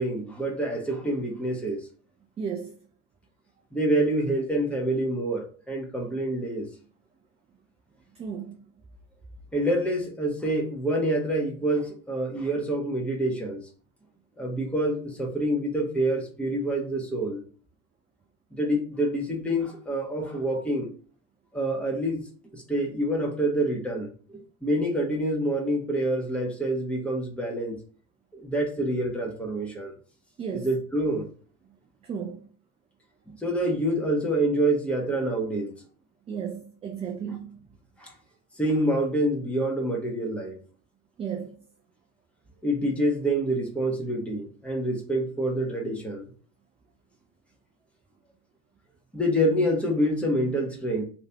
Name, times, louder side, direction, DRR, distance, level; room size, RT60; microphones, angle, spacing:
voice 1, 0.0-1.9 3.7-6.7 9.5-13.6 14.4-17.4 18.5-20.9 21.5-22.2 22.5-27.8 28.3-29.9 30.5-31.3 33.3-35.7 38.0-38.1 38.6-40.6 42.6-46.3 49.1-51.0, right 1 dB, 5° left, 1.2 m, -27 dB
voice 2, 2.4-2.8 8.1-8.6 30.4-30.7 32.0-32.5 36.3-37.6 38.0-38.1 41.2-41.6, right 7 dB, 15° right, 0.3 m, -34 dB
3.1 x 2.9 x 3.4 m
hypercardioid pair, 75°, 39 cm